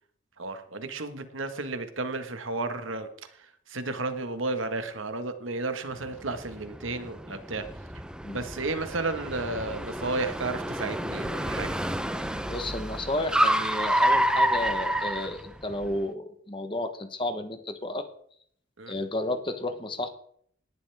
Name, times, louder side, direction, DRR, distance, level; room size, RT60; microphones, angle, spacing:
voice 1, 0.4-7.7 8.3-11.8 18.8-18.9, right 3 dB, 75° right, 8 dB, 1.6 m, -33 dB
Car, 6.1-15.9, right 1 dB, 5° right, 0.7 m, -29 dB
voice 2, 12.5-18.1 18.9-20.1, left 1 dB, 25° left, 9 dB, 1.1 m, -32 dB
18.5 x 11.5 x 3.5 m, 0.63 s
head